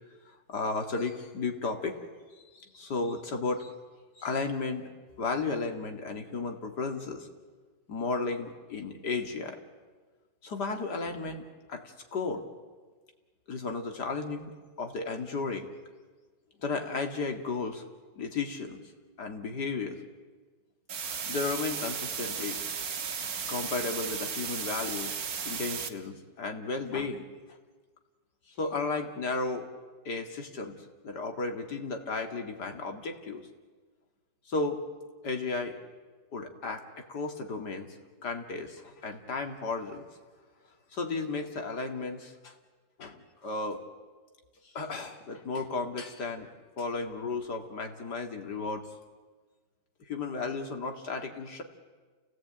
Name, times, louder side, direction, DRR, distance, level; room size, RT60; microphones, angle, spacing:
voice 1, 0.5-2.0 2.5-3.7 4.2-4.9 5.2-7.3 7.9-9.6 10.4-11.4 11.7-11.8 12.1-12.5 13.5-14.5 14.8-15.7 16.6-17.8 18.2-18.8 19.2-20.0 21.0-22.6 23.5-25.1 25.4-27.2 28.5-29.7 30.0-30.8 31.0-33.5 34.5-34.8 35.2-35.8 36.3-38.0 38.2-40.0 40.9-42.5 43.0-43.8 44.7-46.5 46.8-48.9 50.1-51.6, left 3 dB, 65° left, 4 dB, 2.7 m, -34 dB
sound 1, 20.9-25.9, right 6 dB, 55° right, 1.7 m, -35 dB
29.5 x 17.5 x 8.9 m, 1.4 s
omnidirectional pair, 1.9 m